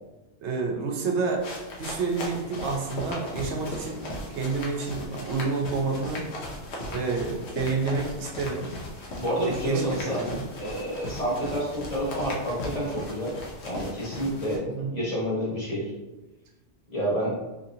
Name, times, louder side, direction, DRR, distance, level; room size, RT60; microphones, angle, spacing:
voice 1, 0.4-1.4 1.8-6.2 6.9-8.7 9.4-10.4 14.8-15.0, right 4 dB, 85° right, 1 dB, 0.9 m, -29 dB
sound 1, 1.4-14.6, left 1 dB, 75° left, 1.0 m, -37 dB
voice 2, 9.2-10.2 10.6-13.3 13.6-14.6 14.9-15.8 16.9-17.3, equal, 40° left, -6 dB, 1.2 m, -29 dB
2.9 x 2.8 x 2.6 m, 1.1 s
omnidirectional pair, 1.1 m